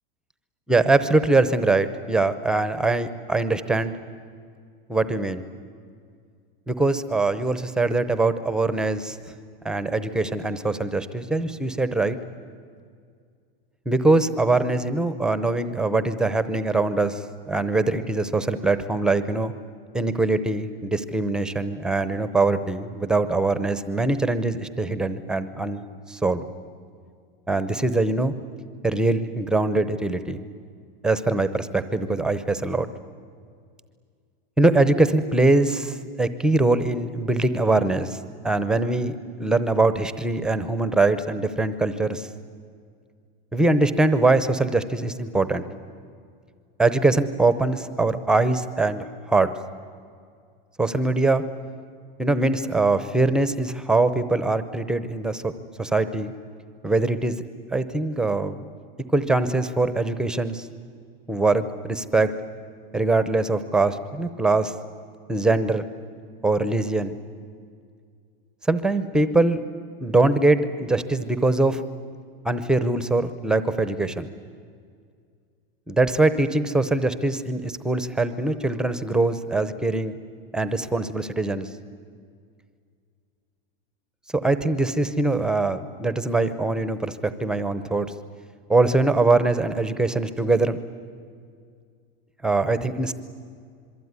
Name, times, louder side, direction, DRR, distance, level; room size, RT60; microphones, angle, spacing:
voice 1, 0.7-3.9 4.9-5.5 6.7-9.2 9.6-12.2 13.9-19.5 19.9-25.8 26.1-26.4 27.5-28.3 28.8-30.4 31.0-32.9 34.6-38.2 38.4-42.3 43.5-45.6 46.8-49.5 50.8-51.4 52.2-55.5 55.8-56.3 56.8-57.3 57.7-58.6 59.1-60.7 61.3-62.3 62.9-64.7 65.3-65.9 66.4-67.1 68.7-69.6 70.0-71.8 72.4-74.3 75.9-80.1 80.5-81.7 84.3-88.1 88.7-90.8 92.4-93.1, right 2 dB, 5° right, 12 dB, 0.7 m, -22 dB
26.5 x 23.0 x 9.6 m, 2.2 s
supercardioid pair, 170°, 29 cm